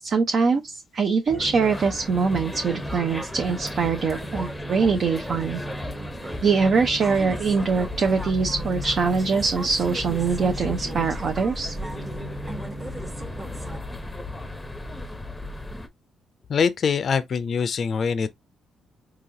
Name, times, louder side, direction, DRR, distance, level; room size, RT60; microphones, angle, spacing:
voice 1, 0.0-5.6 6.4-11.8, right 5 dB, 50° right, 0.6 m, -23 dB
sound 1, 1.3-13.8, right 1 dB, 25° right, 1.1 m, -36 dB
sound 2, 1.6-15.9, left 2 dB, 10° left, 0.7 m, -36 dB
voice 2, 16.5-18.3, left 6 dB, 50° left, 0.4 m, -23 dB
4.0 x 2.8 x 2.7 m
cardioid pair, 90°, 0 cm